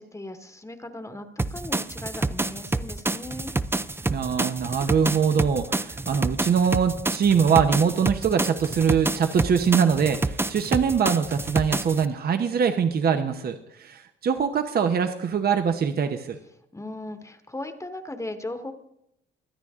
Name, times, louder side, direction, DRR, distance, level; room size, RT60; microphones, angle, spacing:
voice 1, 0.0-3.5 16.7-18.7, left 2 dB, 15° left, 8 dB, 1.3 m, -37 dB
sound 1, 1.4-12.1, right 2 dB, 10° right, 0.5 m, -28 dB
voice 2, 4.1-16.4, right 7 dB, 50° right, 7 dB, 1.0 m, -23 dB
23.0 x 9.3 x 3.7 m, 0.78 s
cardioid pair, 90°, 20 cm